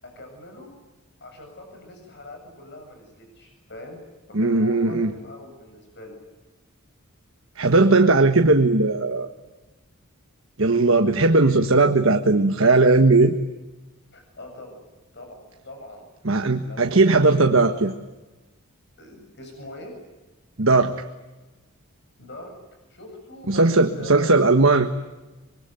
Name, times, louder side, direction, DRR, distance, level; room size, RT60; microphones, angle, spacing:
voice 1, 0.0-0.7 1.2-6.2 14.1-14.8 15.1-16.0 16.6-17.0 19.0-20.0 22.2-22.6 22.9-24.3, left 1 dB, 50° left, 4 dB, 7.8 m, -42 dB
voice 2, 4.3-5.1 7.6-9.3 10.6-13.3 16.2-17.9 20.6-21.0 23.5-24.9, right 3 dB, 65° right, 5 dB, 1.5 m, -18 dB
25.5 x 23.0 x 9.4 m, 1.1 s
head